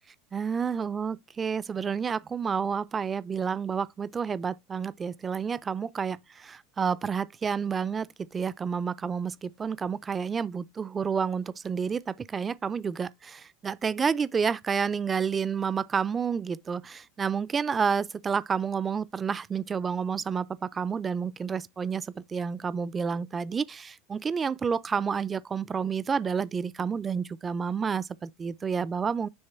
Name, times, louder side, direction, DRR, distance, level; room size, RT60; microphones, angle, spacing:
voice 1, 0.3-29.3, right 6 dB, 25° right, 0.5 m, -30 dB
9.8 x 3.3 x 4.4 m
hypercardioid pair, 90°, 0 cm